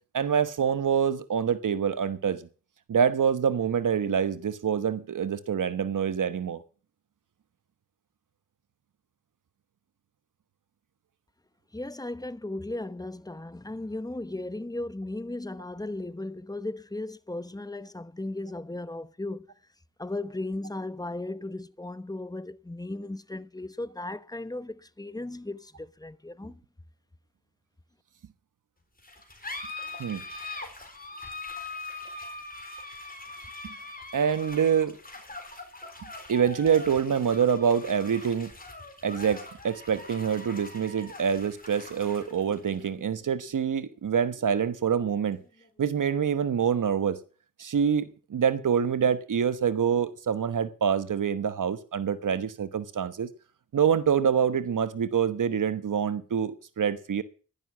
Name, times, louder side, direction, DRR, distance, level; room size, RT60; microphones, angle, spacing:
voice 1, 0.1-2.4 2.9-6.6 30.0-30.2 33.6-33.7 34.1-35.0 36.3-38.5 39.0-45.4 45.8-47.2 47.6-53.3 53.7-57.2, right 7 dB, 80° right, 1.2 m, -26 dB
voice 2, 11.7-19.5 20.0-26.6, left 2 dB, 10° left, 1.0 m, -36 dB
sound 1, 29.0-46.0, left 2 dB, 30° left, 3.9 m, -43 dB
11.0 x 11.0 x 7.4 m
cardioid pair, 45°, 31 cm